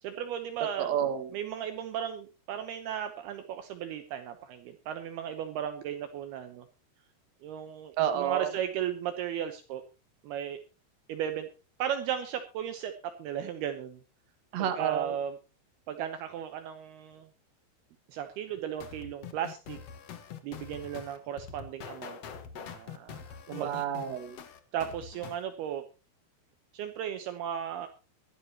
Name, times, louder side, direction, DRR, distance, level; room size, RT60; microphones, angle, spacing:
voice 1, 0.0-0.9 1.3-6.7 7.4-9.8 10.2-10.6 11.1-11.5 11.8-12.9 13.2-14.0 14.8-15.4 15.9-17.3 18.1-19.8 20.4-22.2 22.5-23.7 24.7-25.8 26.7-27.9, right 9 dB, 75° right, 8 dB, 2.8 m, -35 dB
voice 2, 0.8-1.4 8.0-8.5 14.5-15.1 23.5-24.4, right 9 dB, 50° right, 8 dB, 2.5 m, -30 dB
sound 1, 18.8-25.4, left 7 dB, 75° left, 1.4 m, -45 dB
22.0 x 11.5 x 2.9 m, 0.32 s
omnidirectional pair, 5.1 m